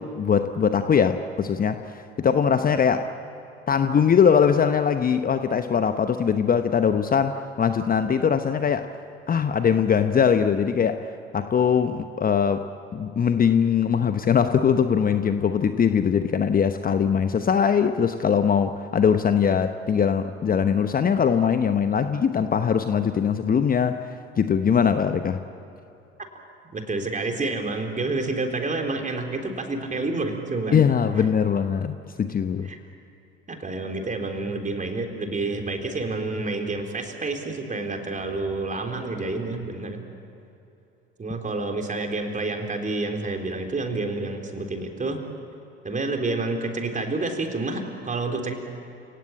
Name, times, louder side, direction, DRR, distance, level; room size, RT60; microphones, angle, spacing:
voice 1, 0.0-3.1 3.7-8.9 9.3-12.7 12.9-25.4 30.7-32.7, left 7 dB, 25° left, 9 dB, 1.0 m, -21 dB
voice 2, 26.7-30.8 32.6-32.8 33.5-40.0 41.2-45.2 45.8-48.5, right 3 dB, 25° right, 3 dB, 3.9 m, -29 dB
30.0 x 18.0 x 8.9 m, 2.8 s
figure-of-eight pair, 65°, 32 cm